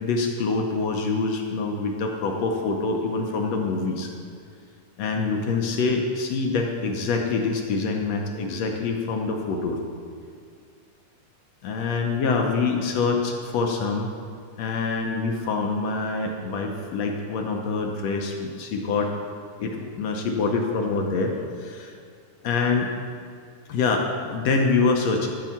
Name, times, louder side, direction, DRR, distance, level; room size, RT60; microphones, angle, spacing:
voice 1, 0.0-4.1 5.0-9.8 11.6-14.1 14.6-19.1 19.6-21.9 22.4-22.9 23.7-25.3, left 4 dB, 70° left, 2 dB, 1.8 m, -25 dB
13.5 x 4.8 x 7.1 m, 2.3 s
omnidirectional pair, 3.6 m